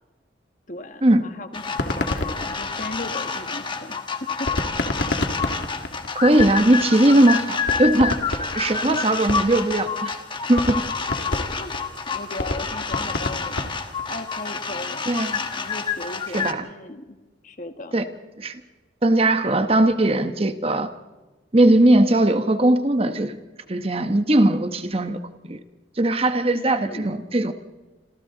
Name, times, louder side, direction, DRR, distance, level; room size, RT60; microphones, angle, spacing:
voice 1, 0.7-4.0 4.4-4.5 8.9-9.0 11.0-11.7 12.1-13.7 14.1-15.1 15.6-17.2 17.4-18.0 26.5-27.2, left 2 dB, 45° left, 7 dB, 1.6 m, -37 dB
sound 1, 1.5-16.5, left 5 dB, 25° left, 1.3 m, -29 dB
sound 2, 1.6-3.5 4.5-6.9 7.2-7.3 7.6-9.7 10.1-10.2 10.5-14.2, left 1 dB, 75° left, 2.3 m, -28 dB
voice 2, 6.2-10.1 10.5-10.8 15.1-15.3 16.3-16.6 17.9-18.1 18.4-18.6 19.0-20.9 21.5-23.4 23.7-25.6 26.0-27.5, right 1 dB, 30° right, 9 dB, 1.0 m, -19 dB
27.5 x 27.0 x 3.9 m, 1.2 s
head